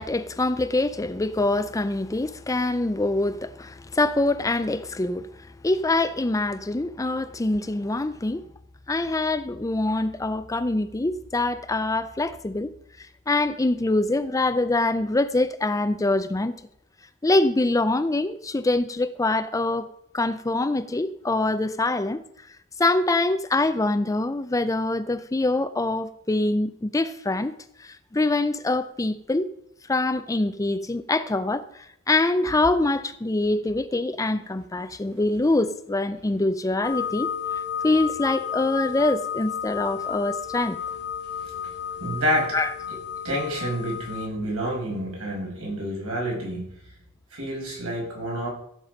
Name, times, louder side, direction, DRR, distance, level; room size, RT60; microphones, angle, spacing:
voice 1, 0.0-5.3 5.6-8.4 8.9-12.7 13.0-16.5 17.2-19.9 20.1-22.2 22.8-27.5 27.8-29.5 29.9-37.3 37.8-40.8 42.5-42.7, left 2 dB, 15° left, 0.5 m, -24 dB
sound 1, 36.8-44.3, left 8 dB, 55° left, 1.0 m, -32 dB
voice 2, 41.4-41.7 42.0-42.6 43.2-46.7 47.3-48.5, equal, 70° right, 5.9 m, -28 dB
15.5 x 7.5 x 5.2 m
head